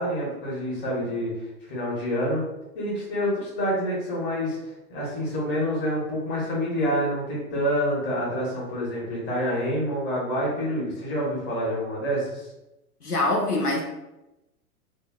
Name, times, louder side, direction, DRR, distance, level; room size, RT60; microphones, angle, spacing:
voice 1, 0.0-2.4 2.7-12.5, equal, 25° left, -6 dB, 1.0 m, -27 dB
voice 2, 13.0-13.8, left 2 dB, 90° left, -1 dB, 0.6 m, -24 dB
3.2 x 2.0 x 2.3 m, 0.95 s
figure-of-eight pair, 100°, 45 cm